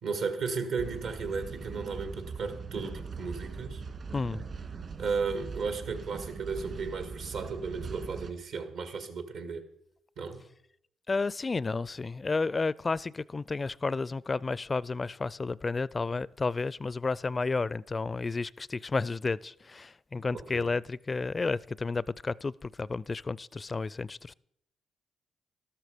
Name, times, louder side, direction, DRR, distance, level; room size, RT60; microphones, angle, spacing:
voice 1, 0.0-3.8 5.0-9.6 10.2-10.4 20.3-20.7, right 5 dB, 75° right, 2.0 m, -34 dB
sound 1, 0.8-8.3, right 5 dB, 55° right, 2.0 m, -41 dB
voice 2, 4.1-4.5 11.1-24.3, left 3 dB, 35° left, 0.4 m, -32 dB
13.0 x 13.0 x 5.1 m
supercardioid pair, 55°, 0 cm